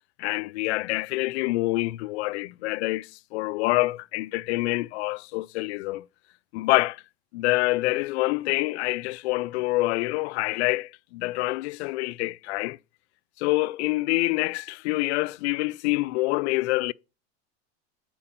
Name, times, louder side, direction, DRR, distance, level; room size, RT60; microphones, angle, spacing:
voice 1, 0.2-6.1 6.5-7.0 7.3-12.8 13.4-16.9, left 21 dB, 80° left, 0.5 m, -26 dB
8.9 x 4.5 x 5.8 m
supercardioid pair, 160°, 33 cm